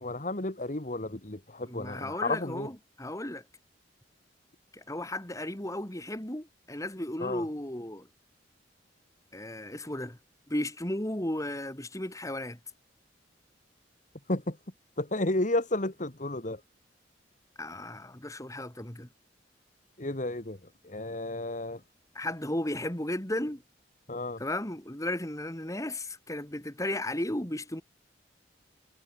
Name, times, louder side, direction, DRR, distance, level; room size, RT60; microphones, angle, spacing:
voice 1, 0.0-2.7 7.2-7.4 14.3-14.6 15.0-16.6 20.0-20.6 20.8-21.8 24.1-24.4, left 2 dB, 45° left, 2.0 m, -32 dB
voice 2, 1.6-3.4 4.7-8.1 9.3-10.2 10.5-12.6 17.6-19.1 22.1-23.6 24.4-27.8, left 1 dB, 15° left, 2.6 m, -35 dB
head